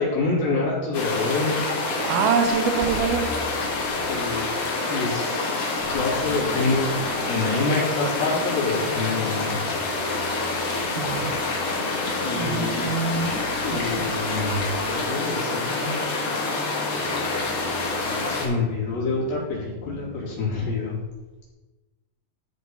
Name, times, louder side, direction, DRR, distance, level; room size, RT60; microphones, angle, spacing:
voice 1, 0.0-1.6 3.9-4.5 4.9-6.9 7.3-9.8 12.2-12.9 13.6-14.6 15.1-15.9 18.0-21.0, left 3 dB, 85° left, -7 dB, 4.9 m, -27 dB
sound 1, 0.9-18.5, left 3 dB, 55° left, 2.3 m, -27 dB
voice 2, 2.0-3.3 10.7-11.4 12.3-13.8, right 6 dB, 85° right, 4 dB, 2.7 m, -25 dB
sound 2, 5.8-20.4, right 3 dB, 65° right, 2.3 m, -41 dB
13.0 x 4.7 x 4.3 m, 1.2 s
omnidirectional pair, 4.2 m